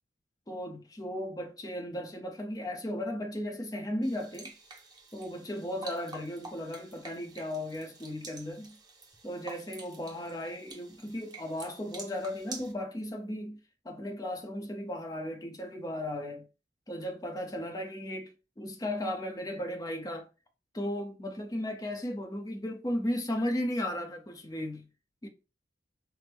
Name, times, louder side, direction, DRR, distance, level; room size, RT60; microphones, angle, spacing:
voice 1, 0.5-4.5 5.1-8.8 9.2-13.6 13.8-16.5 16.9-20.3 20.7-24.9 25.2-25.3, left 1 dB, 20° left, 0.7 m, -35 dB
sound 1, 4.0-12.7, right 3 dB, 20° right, 1.0 m, -48 dB
5.9 x 2.1 x 3.4 m
head